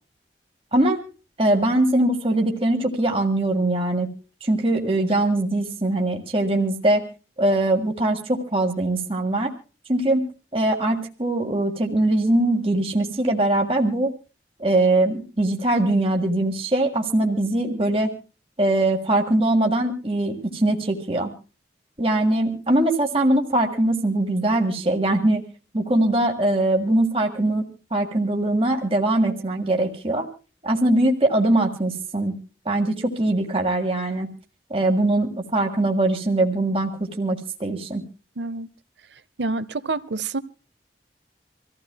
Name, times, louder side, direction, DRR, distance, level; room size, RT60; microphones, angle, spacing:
voice 1, 1.4-4.1 4.4-7.0 7.4-9.5 9.9-10.3 10.5-14.1 14.6-18.1 18.6-21.3 22.0-25.4 25.7-27.7 27.9-30.3 30.6-32.4 32.7-34.3 34.7-38.0, right 1 dB, 30° right, 1.7 m, -21 dB
voice 2, 38.4-38.7 39.4-40.4, right 3 dB, 80° right, 0.7 m, -27 dB
26.5 x 15.5 x 2.2 m
head